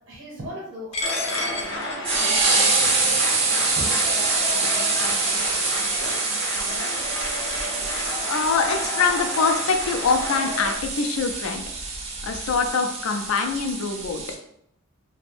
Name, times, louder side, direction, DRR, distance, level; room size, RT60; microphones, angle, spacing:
voice 1, 0.1-1.0 1.3-7.6, equal, 70° right, -5 dB, 0.8 m, -40 dB
Coin (dropping), 0.9-7.7, left 2 dB, 30° left, 0.4 m, -36 dB
sound 1, 1.0-10.7, left 2 dB, 60° left, 0.7 m, -32 dB
sound 2, 1.3-14.3, right 4 dB, 30° right, 0.4 m, -25 dB
voice 2, 8.3-11.6 12.2-14.2, left 5 dB, 90° left, 5 dB, 0.4 m, -24 dB
2.5 x 2.1 x 3.3 m, 0.75 s
head